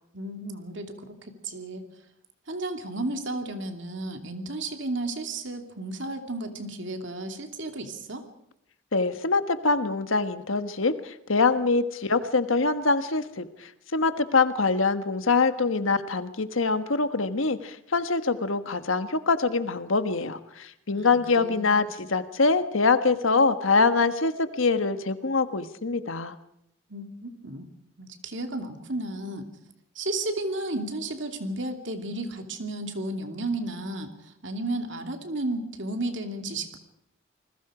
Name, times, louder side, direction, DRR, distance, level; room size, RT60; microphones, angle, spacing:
voice 1, 0.1-1.8 2.5-8.2 20.9-21.8 26.9-27.7 28.0-29.5 29.9-36.8, right 2 dB, 60° right, 6 dB, 2.7 m, -33 dB
voice 2, 8.9-26.3, left 4 dB, 80° left, 10 dB, 1.4 m, -24 dB
28.5 x 20.5 x 5.0 m, 0.81 s
head